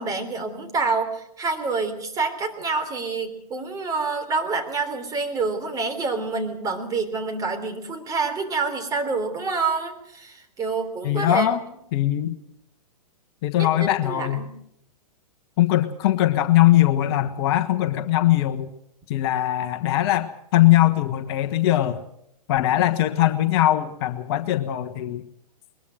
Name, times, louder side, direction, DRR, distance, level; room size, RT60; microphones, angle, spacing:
voice 1, 0.0-11.5 13.6-14.5, right 4 dB, 20° right, 5 dB, 3.5 m, -27 dB
voice 2, 11.0-11.6 11.9-12.4 13.4-14.4 15.6-18.7 19.1-22.0 22.5-25.2, left 14 dB, 40° left, 7 dB, 1.3 m, -21 dB
21.5 x 21.0 x 6.4 m, 0.75 s
figure-of-eight pair, 115°, 19 cm